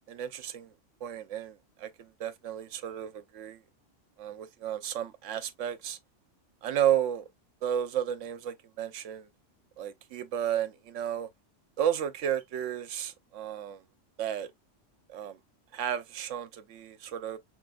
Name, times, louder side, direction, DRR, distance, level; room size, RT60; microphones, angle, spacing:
voice 1, 0.1-0.7 1.0-3.6 4.2-6.0 6.6-7.2 7.6-9.3 9.8-11.3 11.8-13.8 14.2-14.5 15.1-15.4 15.7-17.4, right 10 dB, 85° right, 1.0 m, -32 dB
5.8 x 2.3 x 2.3 m
omnidirectional pair, 1.3 m